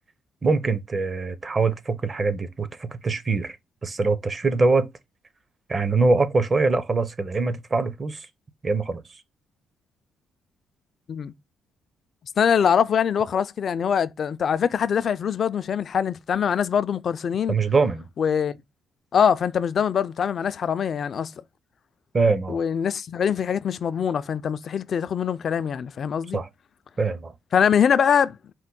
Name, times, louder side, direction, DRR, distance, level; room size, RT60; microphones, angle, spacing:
voice 1, 0.4-3.6 3.8-4.9 5.7-8.3 8.6-9.0 17.5-18.1 22.1-22.6 26.3-26.5 27.0-27.3, right 3 dB, 35° right, 0.6 m, -23 dB
voice 2, 12.4-17.6 18.2-18.5 19.1-21.3 22.5-26.4 27.5-28.4, left 7 dB, 55° left, 0.3 m, -23 dB
4.4 x 2.1 x 3.7 m
cardioid pair, 90°, 0 cm